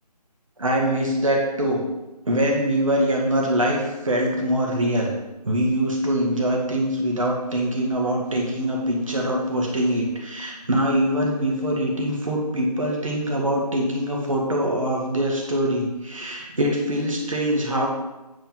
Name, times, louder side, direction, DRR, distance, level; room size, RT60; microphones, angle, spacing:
voice 1, 0.6-1.8 2.3-5.1 5.4-17.9, right 1 dB, 50° right, -1 dB, 2.0 m, -23 dB
8.8 x 4.3 x 5.6 m, 1.0 s
figure-of-eight pair, 160°, 21 cm